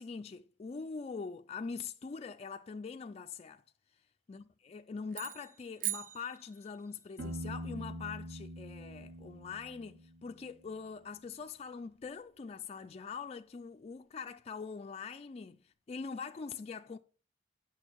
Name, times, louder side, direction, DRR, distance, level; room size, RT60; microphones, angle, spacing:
voice 1, 0.0-3.6 4.3-17.0, left 5 dB, 35° left, 0.3 m, -43 dB
sound 1, 5.1-7.0, right 14 dB, 45° right, 0.3 m, -41 dB
Piano, 7.2-10.9, equal, 70° right, 1.8 m, -44 dB
8.9 x 5.9 x 4.5 m
head